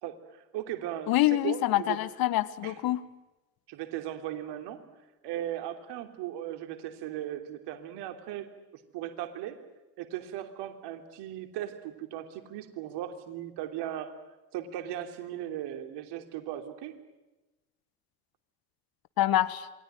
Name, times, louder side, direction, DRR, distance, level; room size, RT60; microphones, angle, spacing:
voice 1, 0.0-2.0 2.6-2.7 3.7-4.8 5.2-8.5 8.9-9.6 10.0-14.1 14.5-17.0, right 12 dB, 55° right, 6 dB, 3.2 m, -37 dB
voice 2, 1.1-3.0 19.2-19.7, left 14 dB, 50° left, 15 dB, 1.5 m, -26 dB
28.0 x 22.0 x 9.1 m, 1.1 s
figure-of-eight pair, 60°, 47 cm